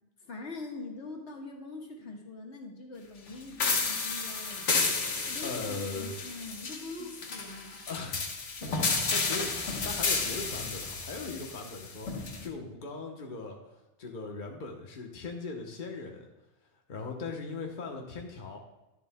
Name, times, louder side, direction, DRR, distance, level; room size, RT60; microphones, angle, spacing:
voice 1, 0.2-4.7 5.2-7.8, left 3 dB, 70° left, 0 dB, 1.7 m, -43 dB
sound 1, 3.6-12.5, left 4 dB, 90° left, 1.4 m, -32 dB
voice 2, 5.4-6.1 7.9-16.3 16.9-18.6, left 3 dB, 45° left, 1 dB, 1.1 m, -39 dB
11.0 x 10.5 x 2.2 m, 1.0 s
omnidirectional pair, 1.2 m